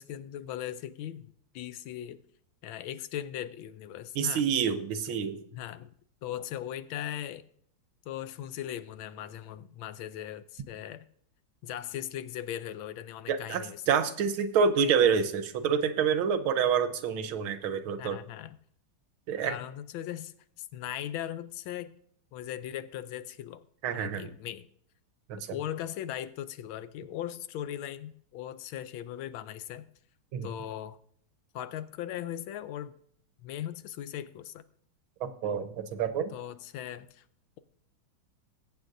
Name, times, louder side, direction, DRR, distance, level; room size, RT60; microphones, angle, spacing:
voice 1, 0.0-2.2 2.6-4.4 5.5-5.9 6.2-7.4 8.1-11.1 11.6-14.0 18.0-18.6 19.4-21.9 22.3-23.6 23.9-24.7 25.5-29.9 30.4-31.0 31.5-32.9 33.4-34.6 36.3-37.2, left 11 dB, 75° left, 13 dB, 1.3 m, -39 dB
voice 2, 4.1-5.4 13.3-18.2 19.3-19.5 23.8-24.3 25.3-25.5 30.3-30.5 35.2-36.3, right 7 dB, 80° right, 9 dB, 1.6 m, -27 dB
21.0 x 8.3 x 2.6 m, 0.65 s
omnidirectional pair, 2.3 m